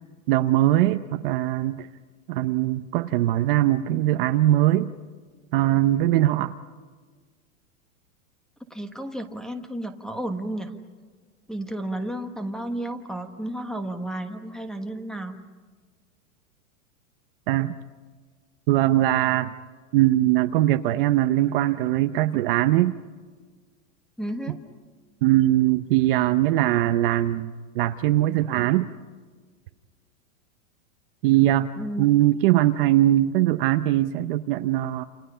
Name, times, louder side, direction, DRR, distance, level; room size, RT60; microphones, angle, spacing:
voice 1, 0.3-1.9 2.3-4.9 5.5-6.5 17.5-17.8 18.7-19.5 19.9-22.9 25.2-28.9 31.2-31.7 32.0-35.0, right 14 dB, 40° right, 9 dB, 0.8 m, -21 dB
voice 2, 8.7-10.7 11.5-15.4 24.2-24.6 31.8-32.0, right 1 dB, ahead, 7 dB, 1.3 m, -32 dB
29.0 x 28.0 x 5.6 m, 1.5 s
supercardioid pair, 155°, 42 cm